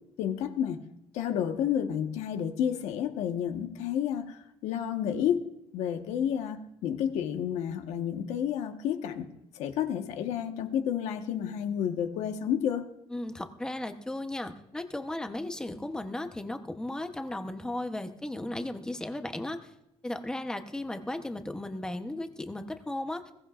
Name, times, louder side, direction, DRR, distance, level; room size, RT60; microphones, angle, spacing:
voice 1, 0.2-0.8 1.1-5.5 5.7-9.3 9.5-12.8, left 9 dB, 75° left, 6 dB, 1.4 m, -30 dB
voice 2, 13.1-19.7 20.0-23.3, left 1 dB, 5° left, 6 dB, 0.9 m, -35 dB
21.0 x 17.0 x 2.5 m, 0.84 s
cardioid pair, 160°, 11 cm